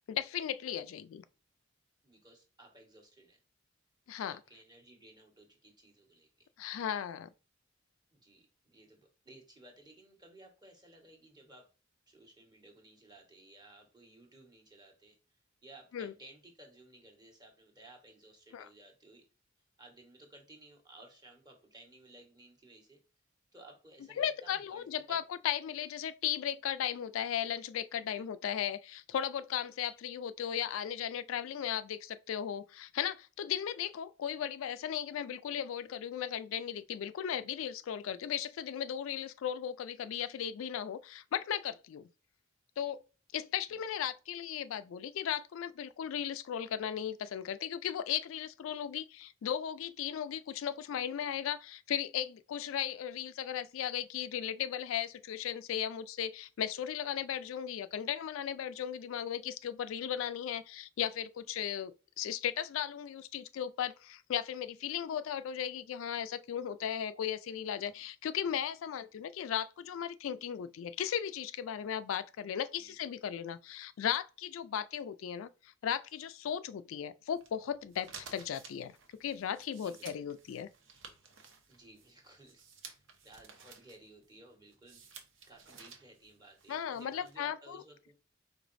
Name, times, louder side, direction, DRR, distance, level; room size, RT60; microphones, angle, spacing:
voice 1, 0.1-1.2 4.1-4.4 6.6-7.3 15.9-16.1 18.5-18.7 24.2-42.1 42.8-43.0 43.3-80.7 86.7-87.8, left 9 dB, 75° left, 0.3 m, -36 dB
voice 2, 2.0-3.4 4.3-6.5 8.1-11.7 12.1-15.2 15.6-19.2 19.8-23.0 23.5-25.2 28.1-28.2 43.7-43.8 67.8-68.0 72.8-72.9 79.7-80.3 81.7-85.0 85.5-88.1, right 2 dB, 20° right, 1.3 m, -57 dB
sound 1, 77.3-87.4, right 5 dB, 65° right, 0.9 m, -55 dB
4.9 x 3.9 x 2.6 m
head